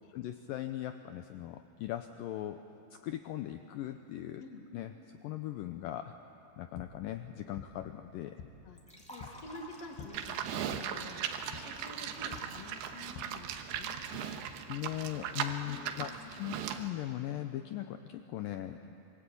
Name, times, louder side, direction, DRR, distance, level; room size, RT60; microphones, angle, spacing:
voice 1, 0.1-2.6 2.9-4.4 4.7-4.9 5.2-6.2 6.6-8.4 14.7-18.9, left 13 dB, 85° left, 8 dB, 1.9 m, -39 dB
sound 1, 6.4-14.2, left 5 dB, 70° left, 3.3 m, -52 dB
Liquid, 8.8-14.9, equal, ahead, 1.9 m, -54 dB
voice 2, 9.1-11.3 11.5-14.0 15.7-16.3, left 2 dB, 45° left, 3 dB, 2.8 m, -50 dB
Livestock farm animals working animals, 10.1-16.9, right 8 dB, 90° right, 3.3 m, -38 dB
26.5 x 23.0 x 8.5 m, 2.9 s
omnidirectional pair, 4.9 m